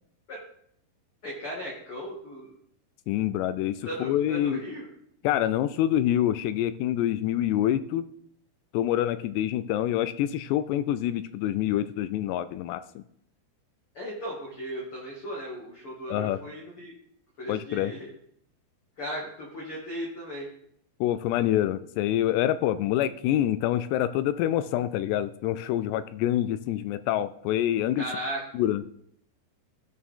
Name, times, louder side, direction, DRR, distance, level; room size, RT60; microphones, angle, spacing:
voice 1, 1.2-2.5 3.8-4.9 13.9-16.9 17.4-18.1 19.0-20.5 28.0-28.4, equal, 40° left, -4 dB, 2.2 m, -36 dB
voice 2, 3.1-4.6 5.2-8.1 8.7-13.0 16.1-16.4 17.5-17.9 21.0-28.0 28.5-29.0, left 12 dB, 85° left, 12 dB, 2.4 m, -26 dB
17.0 x 6.5 x 3.7 m, 0.69 s
omnidirectional pair, 5.3 m